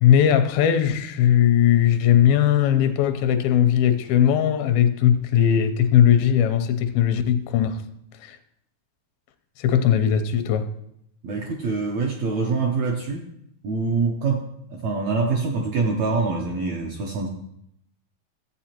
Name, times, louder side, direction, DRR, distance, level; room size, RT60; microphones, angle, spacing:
voice 1, 0.0-7.8 8.2-8.4 9.6-10.7, left 9 dB, 85° left, 2.5 m, -19 dB
voice 2, 11.2-13.2 13.6-14.4 14.7-17.3, right 4 dB, 75° right, 1.6 m, -25 dB
14.5 x 8.2 x 2.9 m
omnidirectional pair, 4.1 m